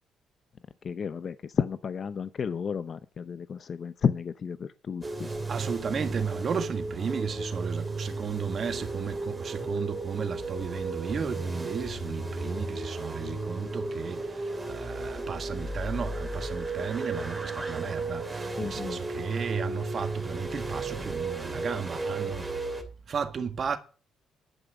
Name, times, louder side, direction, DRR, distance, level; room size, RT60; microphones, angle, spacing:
voice 1, 0.8-5.3 18.6-19.0, left 6 dB, 50° left, 0.7 m, -32 dB
sound 1, 5.0-22.8, right 2 dB, 15° right, 2.7 m, -34 dB
voice 2, 5.5-22.5 23.1-23.8, right 6 dB, 50° right, 1.6 m, -34 dB
11.0 x 5.8 x 8.1 m
cardioid pair, 90°, 0 cm